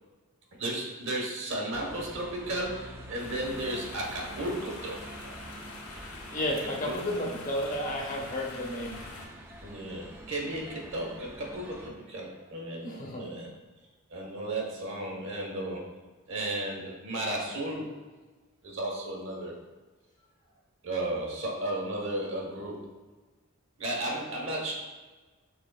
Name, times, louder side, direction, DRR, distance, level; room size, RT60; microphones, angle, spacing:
voice 1, 0.6-5.4 6.6-7.2 9.6-13.5 14.1-15.9 16.3-18.0 18.6-19.5 20.8-23.0 23.8-24.7, right 1 dB, 60° right, -1 dB, 1.1 m, -34 dB
sound 1, 1.7-11.9, right 1 dB, 10° right, 0.4 m, -46 dB
sound 2, 3.2-9.3, left 3 dB, 80° left, 0.7 m, -45 dB
voice 2, 6.3-9.0 12.8-13.4, left 1 dB, 40° left, 0 dB, 0.8 m, -32 dB
6.3 x 3.5 x 2.2 m, 1.3 s
head